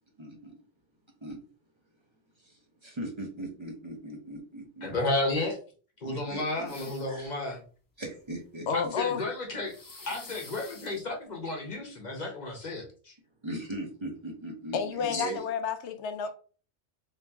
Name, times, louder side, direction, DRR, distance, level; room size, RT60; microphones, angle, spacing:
voice 1, 0.2-0.6 1.2-1.4 2.4-4.9 6.0-7.3 8.0-9.2 13.4-15.4, right 1 dB, 30° right, 0.7 m, -39 dB
voice 2, 4.8-5.6 6.0-7.6 8.7-9.7 10.1-13.1 15.1-15.3, left 2 dB, 45° left, 0.9 m, -32 dB
sound 1, 6.7-7.2 9.6-11.0, left 3 dB, 25° left, 0.5 m, -47 dB
voice 3, 8.7-9.2 14.7-16.3, left 6 dB, 85° left, 0.9 m, -30 dB
3.1 x 2.9 x 3.4 m
omnidirectional pair, 1.1 m